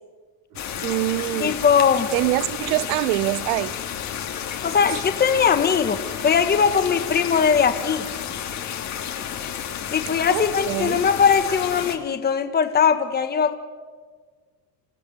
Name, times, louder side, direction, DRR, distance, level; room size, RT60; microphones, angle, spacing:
voice 1, 0.5-1.6 2.1-3.8 10.3-11.0, right 19 dB, 70° right, 0.8 m, -25 dB
sound 1, 0.6-12.0, left 9 dB, 35° left, 2.6 m, -31 dB
voice 2, 1.4-2.1 4.6-8.1 9.9-13.5, left 7 dB, 20° left, 1.6 m, -20 dB
27.0 x 15.5 x 9.4 m
cardioid pair, 145°, 46 cm